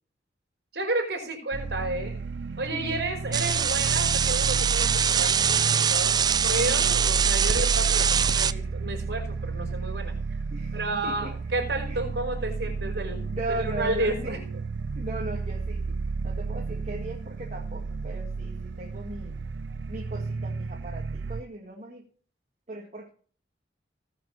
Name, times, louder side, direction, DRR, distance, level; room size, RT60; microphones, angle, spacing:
voice 1, 0.7-2.2 2.6-10.1 10.7-13.2 13.5-14.4, right 2 dB, 60° right, 2 dB, 5.5 m, -31 dB
sound 1, 1.5-21.4, right 4 dB, 80° right, 0.5 m, -32 dB
sound 2, 3.3-8.5, right 7 dB, 20° right, 0.4 m, -23 dB
voice 2, 10.5-11.3 11.9-12.0 12.6-12.7 13.2-14.5 14.9-16.0 16.2-19.3 19.9-22.1 22.7-23.1, right 2 dB, 40° right, -1 dB, 2.1 m, -38 dB
19.5 x 6.8 x 4.1 m, 0.44 s
head